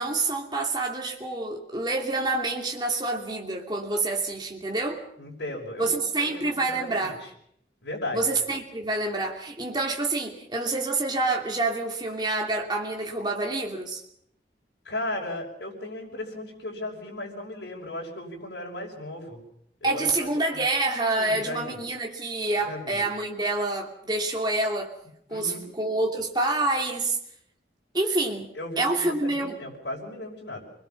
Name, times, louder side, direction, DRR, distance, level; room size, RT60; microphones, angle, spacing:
voice 1, 0.0-5.0 5.8-7.2 8.1-14.0 19.8-24.9 25.3-27.2 27.9-29.6, right 2 dB, 25° right, 0 dB, 2.8 m, -27 dB
voice 2, 5.2-7.2 7.8-8.2 14.8-19.4 19.8-20.6 21.2-21.8 22.7-23.0 25.3-25.7 28.5-30.6, left 1 dB, 75° left, -2 dB, 5.9 m, -36 dB
27.5 x 21.5 x 5.8 m, 0.70 s
head